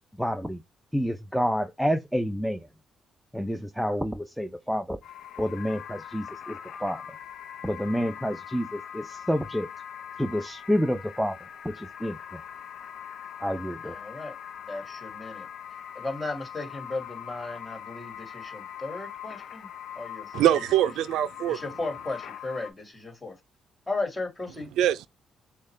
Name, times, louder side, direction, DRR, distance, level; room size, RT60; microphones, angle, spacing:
voice 1, 0.2-0.6 0.9-2.7 3.3-5.0 5.4-7.2 7.6-9.7 10.2-11.4 11.6-12.4 13.4-14.0, equal, ahead, 0.5 m, -29 dB
sound 1, 5.0-22.7, left 9 dB, 65° left, 0.6 m, -42 dB
voice 2, 13.8-14.3 14.6-15.5 15.9-19.7 20.0-20.6 21.5-23.4 23.9-24.7, left 2 dB, 20° left, 1.9 m, -35 dB
voice 3, 20.3-21.6 24.8-25.1, right 12 dB, 85° right, 0.3 m, -23 dB
6.3 x 2.2 x 3.3 m
cardioid pair, 90°, 0 cm